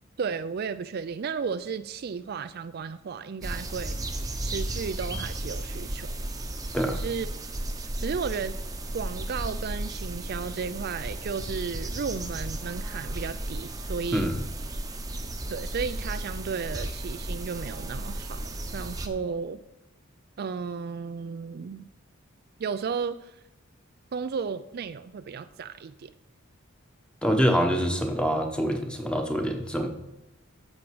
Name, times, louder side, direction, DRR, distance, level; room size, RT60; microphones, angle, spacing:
voice 1, 0.2-4.1 4.4-6.1 6.9-7.3 8.0-8.6 8.9-14.3 15.5-19.6 20.4-21.9 22.6-23.4 24.1-26.1, right 5 dB, 50° right, 11 dB, 0.4 m, -34 dB
sound 1, 3.4-19.1, right 1 dB, 20° right, 0.9 m, -34 dB
voice 2, 27.2-29.9, equal, 5° left, 4 dB, 1.2 m, -25 dB
11.5 x 7.3 x 4.9 m, 0.94 s
head